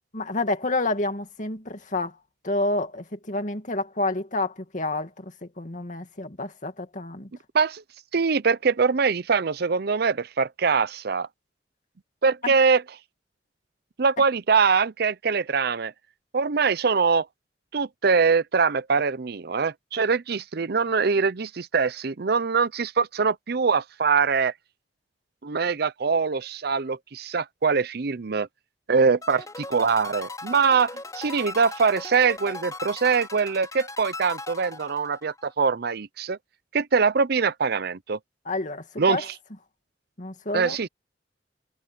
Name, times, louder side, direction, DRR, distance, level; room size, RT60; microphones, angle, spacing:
voice 1, 0.1-2.2 2.4-5.2 5.6-7.3 12.4-12.5 38.5-39.2 40.2-40.8, left 2 dB, 45° left, 2.4 m, -29 dB
voice 2, 8.1-11.3 12.2-12.8 14.0-15.9 16.3-17.3 17.7-24.5 25.4-28.5 28.9-36.4 36.7-38.2 39.0-39.3 40.5-40.9, right 5 dB, 60° right, 0.6 m, -23 dB
sound 1, 29.2-35.5, left 3 dB, 20° left, 4.4 m, -38 dB
head